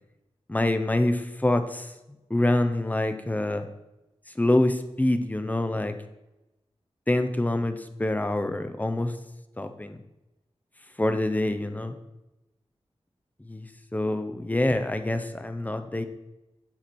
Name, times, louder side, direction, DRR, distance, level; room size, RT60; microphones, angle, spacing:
voice 1, 0.5-1.9 2.3-3.7 4.4-6.0 7.1-9.1 9.6-10.0 11.0-11.9 13.5-13.7 13.9-16.1, left 1 dB, 15° left, 8 dB, 0.8 m, -26 dB
11.5 x 4.8 x 4.4 m, 0.97 s
wide cardioid pair, 85°, 11 cm